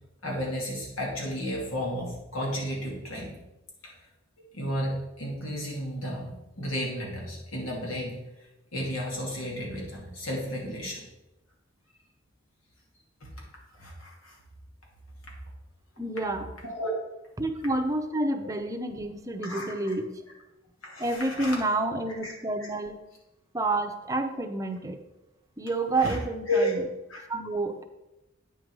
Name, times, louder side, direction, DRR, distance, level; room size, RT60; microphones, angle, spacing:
voice 1, 0.2-3.4 3.8-3.9 4.5-8.2 8.7-11.0 13.2-13.3 13.8-14.4 16.6-16.9 19.4-19.9 20.8-21.6 22.2-22.3 25.9-26.2 26.5-26.7 27.1-27.2, left 1 dB, 85° left, -2 dB, 2.6 m, -32 dB
voice 2, 16.0-16.5 17.4-20.1 21.0-23.0 23.5-25.0 25.6-26.8 27.3-27.8, right 2 dB, 15° right, 5 dB, 0.7 m, -29 dB
9.0 x 5.4 x 4.7 m, 0.98 s
head